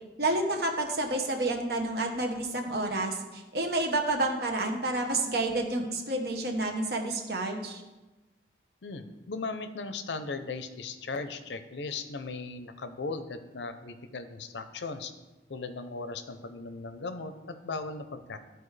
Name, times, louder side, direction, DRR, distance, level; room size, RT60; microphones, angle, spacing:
voice 1, 0.2-7.8, right 2 dB, 65° right, 3 dB, 1.1 m, -29 dB
voice 2, 8.8-15.1 15.5-18.4, left 3 dB, 85° left, 9 dB, 0.6 m, -37 dB
13.5 x 4.6 x 3.3 m, 1.1 s
head